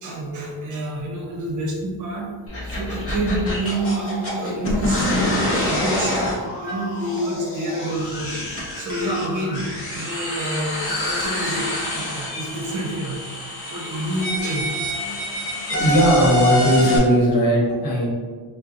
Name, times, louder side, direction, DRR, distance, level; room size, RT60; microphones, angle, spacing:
voice 1, 0.0-2.3 2.6-8.3 8.8-11.7 11.9-13.4 13.7-15.2, right 1 dB, 50° right, 0 dB, 0.7 m, -28 dB
sound 1, 2.5-17.0, left 1 dB, 35° left, 0.7 m, -26 dB
voice 2, 15.0-18.1, equal, 55° left, -4 dB, 1.1 m, -19 dB
4.3 x 2.2 x 2.5 m, 1.5 s
cardioid pair, 155°, 40 cm